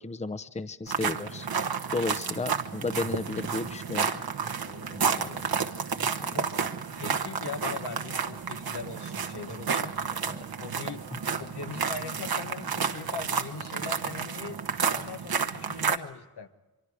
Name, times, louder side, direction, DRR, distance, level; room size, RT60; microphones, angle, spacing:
voice 1, 0.0-1.5 1.9-4.1 5.1-5.2 6.2-6.3 10.3-10.4, left 3 dB, 15° left, 12 dB, 0.7 m, -33 dB
sound 1, 0.9-16.0, right 6 dB, 65° right, 1.1 m, -31 dB
voice 2, 4.4-5.6 6.0-10.3 10.6-11.0 11.3-14.6 14.8-16.5, left 5 dB, 85° left, 6 dB, 1.4 m, -41 dB
25.0 x 24.5 x 4.9 m, 1.2 s
wide cardioid pair, 110°, 39 cm